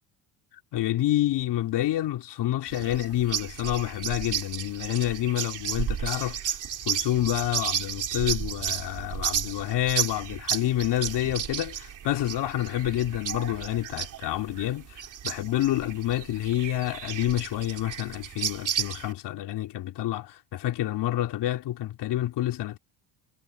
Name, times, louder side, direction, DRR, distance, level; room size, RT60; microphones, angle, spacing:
voice 1, 0.7-6.6 6.9-22.8, left 13 dB, 60° left, 3.6 m, -28 dB
sound 1, 2.7-19.1, right 9 dB, 40° right, 3.2 m, -33 dB
cardioid pair, 145°, 46 cm